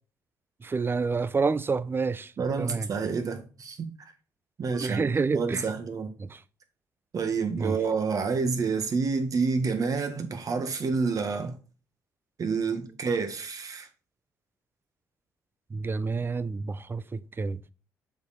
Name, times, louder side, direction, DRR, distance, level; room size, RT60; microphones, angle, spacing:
voice 1, 0.6-2.3 2.6-2.9 4.7-5.7 6.2-6.4 7.5-7.8 15.7-17.6, right 4 dB, 30° right, 0.5 m, -28 dB
voice 2, 2.4-3.9 4.6-6.1 7.1-11.5 12.4-13.9, right 4 dB, 50° right, 1.4 m, -28 dB
6.8 x 4.7 x 4.2 m
supercardioid pair, 60°, 8 cm